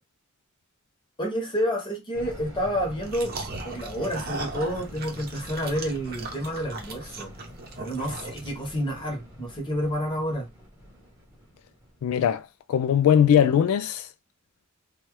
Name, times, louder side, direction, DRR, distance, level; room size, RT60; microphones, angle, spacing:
voice 1, 1.2-3.4 3.6-7.3 7.8-10.5, equal, 25° left, 1.0 m, -29 dB
sound 1, 2.1-12.3, equal, 15° right, 1.0 m, -44 dB
sound 2, 3.0-8.8, right 3 dB, 45° right, 0.7 m, -38 dB
voice 2, 12.0-14.1, left 8 dB, 85° left, 0.3 m, -21 dB
2.8 x 2.3 x 3.1 m
head